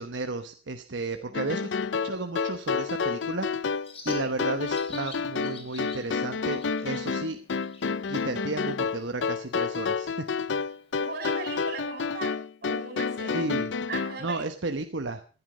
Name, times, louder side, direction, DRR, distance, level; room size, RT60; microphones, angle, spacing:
voice 1, 0.0-1.7 2.0-3.7 4.0-7.4 8.1-10.6 13.3-13.7 14.2-15.2, right 3 dB, 85° right, 6 dB, 1.1 m, -33 dB
sound 1, 1.3-14.2, left 5 dB, 80° left, 0.6 m, -30 dB
Bird, 2.5-11.5, left 4 dB, 35° left, 3.3 m, -50 dB
voice 2, 11.0-13.5 13.9-14.5, right 3 dB, 55° right, 5 dB, 6.6 m, -38 dB
15.5 x 11.0 x 5.0 m, 0.38 s
head